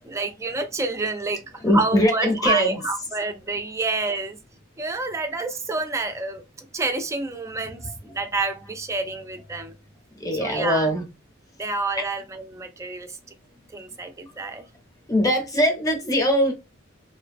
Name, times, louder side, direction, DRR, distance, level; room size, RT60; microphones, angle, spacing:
voice 1, 0.0-1.4 1.7-4.4 4.8-9.7 10.4-10.9 11.6-13.2 13.7-14.6, right 3 dB, 15° right, 0.3 m, -28 dB
voice 2, 1.6-2.9 7.8-7.9 10.1-11.1 12.0-12.1 15.1-16.5, equal, 15° left, 0.6 m, -22 dB
2.5 x 2.2 x 2.5 m
head